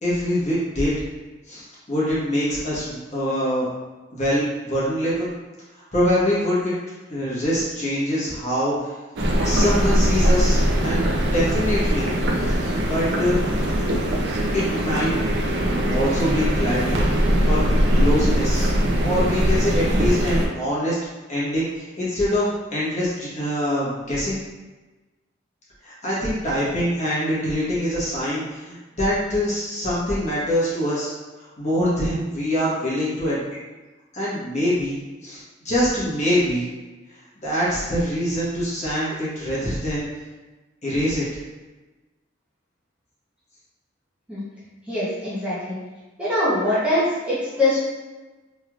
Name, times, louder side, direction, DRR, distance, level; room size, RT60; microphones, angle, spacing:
voice 1, 0.0-0.9 1.5-3.7 4.1-5.3 5.9-6.7 7.1-8.9 9.4-12.1 12.4-12.6 12.8-13.4 14.5-15.2 15.6-17.0 17.4-17.7 17.9-18.7 19.0-21.0 21.3-24.4 25.8-31.1 31.4-33.5 34.1-35.4 35.6-36.7 37.4-40.1 40.8-41.2, equal, 40° left, -8 dB, 1.2 m, -24 dB
sound 1, 9.2-20.5, equal, 60° right, 0.5 m, -21 dB
voice 2, 44.9-45.8 46.2-47.8, left 1 dB, 5° right, -10 dB, 0.8 m, -23 dB
3.3 x 3.1 x 2.3 m, 1.2 s
head